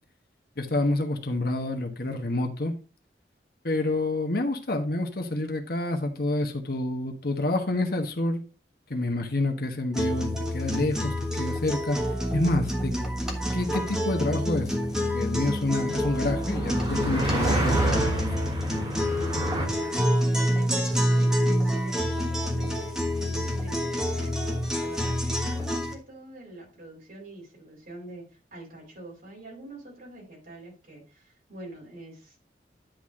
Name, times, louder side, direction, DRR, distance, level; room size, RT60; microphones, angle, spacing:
voice 1, 0.6-2.7 3.6-8.4 8.9-12.0 12.3-12.9 13.5-14.7 15.0-18.3, left 2 dB, 55° left, 1.2 m, -28 dB
sound 1, 9.9-25.9, equal, 5° right, 1.3 m, -27 dB
sound 2, 11.2-19.7, right 1 dB, 25° right, 3.2 m, -31 dB
voice 2, 19.6-32.4, right 1 dB, 50° right, 4.9 m, -45 dB
10.5 x 4.1 x 4.9 m
head